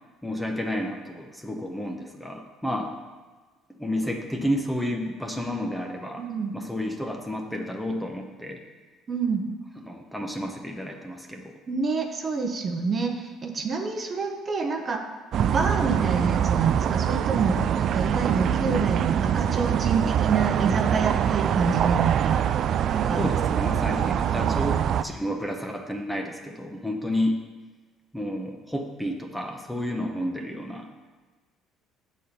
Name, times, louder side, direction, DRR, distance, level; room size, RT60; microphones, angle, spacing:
voice 1, 0.2-2.9 3.8-6.3 6.5-8.6 9.8-11.5 23.2-27.4 28.1-30.9, equal, 5° left, 2 dB, 0.9 m, -31 dB
voice 2, 6.2-6.5 9.1-9.4 11.7-15.1 15.4-22.6 22.9-23.3, right 5 dB, 35° right, 3 dB, 0.9 m, -27 dB
sound 1, 15.3-25.0, right 9 dB, 55° right, 0.3 m, -24 dB
7.4 x 4.2 x 6.8 m, 1.3 s
cardioid pair, 100°, 0 cm